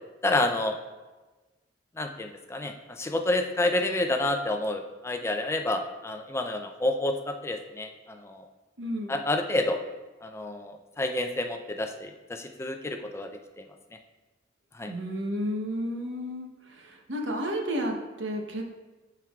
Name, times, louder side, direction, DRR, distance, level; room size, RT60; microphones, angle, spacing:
voice 1, 0.2-0.8 2.0-8.4 9.1-9.8 10.2-13.3 13.6-13.7 14.8-14.9, left 2 dB, 15° left, 5 dB, 0.4 m, -29 dB
voice 2, 8.8-9.2 14.9-18.6, equal, 85° right, 2 dB, 0.9 m, -32 dB
10.5 x 4.6 x 2.4 m, 1.2 s
head